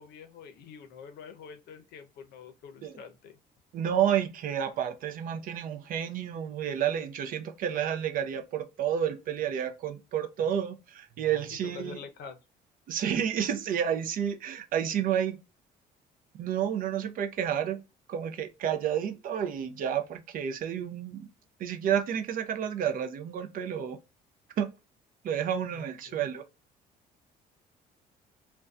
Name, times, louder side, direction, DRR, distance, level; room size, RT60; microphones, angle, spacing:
voice 1, 0.0-3.4 11.6-12.4 25.7-26.3, left 6 dB, 70° left, 0.6 m, -46 dB
voice 2, 3.7-12.0 12.9-15.4 16.4-17.8 18.1-21.3 21.6-24.0 24.6-24.7 25.2-26.4, right 9 dB, 55° right, 0.4 m, -30 dB
2.5 x 2.2 x 2.2 m
cardioid pair, 110°, 17 cm